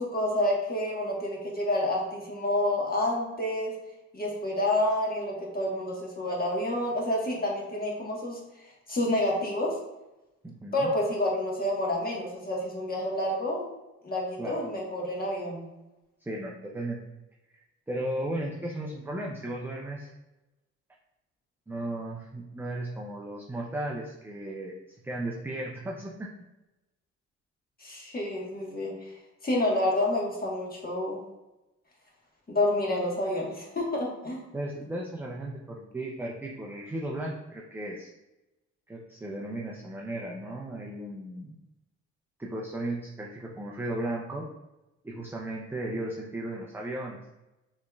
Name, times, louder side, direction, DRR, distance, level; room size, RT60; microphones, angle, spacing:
voice 1, 0.0-3.7 4.1-8.4 8.9-9.8 10.7-13.7 14.0-15.6 27.8-28.9 29.4-31.2 32.5-34.4, left 1 dB, 30° left, -2 dB, 1.3 m, -28 dB
voice 2, 10.4-10.9 14.4-14.6 16.2-17.0 17.5-20.1 21.7-26.3 34.5-38.1 38.9-41.6 42.4-44.5 45.0-47.2, right 1 dB, 5° right, -2 dB, 0.4 m, -35 dB
5.8 x 3.1 x 2.3 m, 0.99 s
cardioid pair, 90°, 30 cm